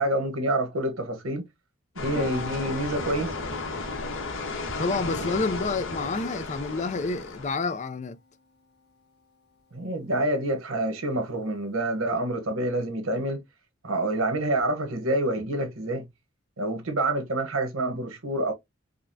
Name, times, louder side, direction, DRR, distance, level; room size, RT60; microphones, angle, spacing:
voice 1, 0.0-1.5 2.0-3.3 9.7-13.4 13.8-16.1 16.6-18.5, right 1 dB, 80° right, 1.1 m, -27 dB
sound 1, 2.0-7.5, left 3 dB, 65° left, 1.3 m, -34 dB
Piano, 2.1-9.2 9.5-9.7, left 4 dB, 50° left, 1.5 m, -44 dB
voice 2, 4.8-8.2, left 3 dB, 35° left, 0.4 m, -29 dB
5.0 x 2.2 x 2.6 m
head